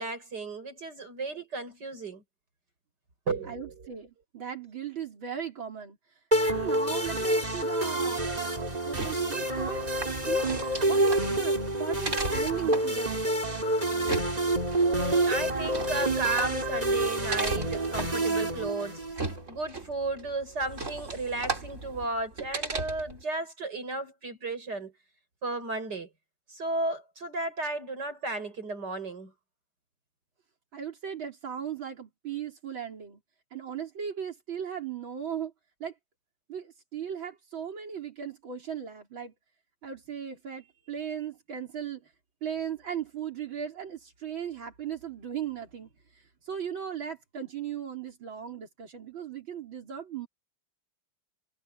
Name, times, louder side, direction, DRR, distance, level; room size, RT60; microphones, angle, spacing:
voice 1, 0.0-2.2 3.3-3.9 14.8-19.0 19.5-24.9 25.4-26.1 26.5-29.3, right 3 dB, 55° right, 7.0 m, -34 dB
voice 2, 3.4-9.8 10.3-10.5 10.9-13.5 30.7-33.2 33.5-35.5 35.8-36.0 36.5-39.3 39.8-42.1 42.4-50.3, right 8 dB, 80° right, 4.5 m, -37 dB
sound 1, 6.3-19.4, right 1 dB, 20° right, 3.4 m, -28 dB
sound 2, 8.7-23.2, right 3 dB, 35° right, 4.0 m, -37 dB
omnidirectional pair, 2.1 m